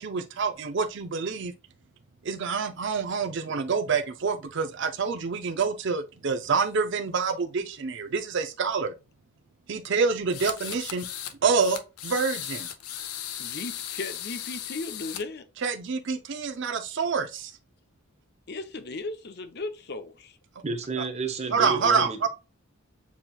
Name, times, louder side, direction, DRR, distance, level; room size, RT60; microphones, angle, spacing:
voice 1, 0.0-1.5 2.2-8.9 9.7-11.1 11.4-12.7 15.6-17.5 21.5-22.3, right 5 dB, 55° right, 0.5 m, -27 dB
sound 1, 10.3-11.3 11.6-15.2, left 10 dB, 85° left, 0.6 m, -36 dB
voice 2, 13.4-15.4 18.5-20.4, left 3 dB, 45° left, 0.6 m, -36 dB
voice 3, 20.6-22.3, right 4 dB, 30° right, 0.8 m, -31 dB
7.0 x 3.0 x 2.3 m
head